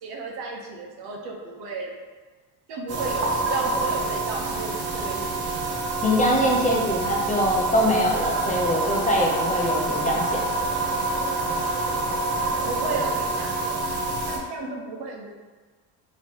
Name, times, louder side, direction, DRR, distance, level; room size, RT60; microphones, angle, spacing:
voice 1, 0.0-1.9 2.7-5.6 12.6-13.9 14.3-15.3, right 3 dB, 70° right, 0 dB, 1.0 m, -33 dB
sound 1, 2.9-14.4, right 2 dB, 40° right, 0.7 m, -27 dB
voice 2, 6.0-10.5, equal, 20° left, -2 dB, 0.6 m, -23 dB
5.5 x 3.0 x 3.0 m, 1.4 s
cardioid pair, 140°, 40 cm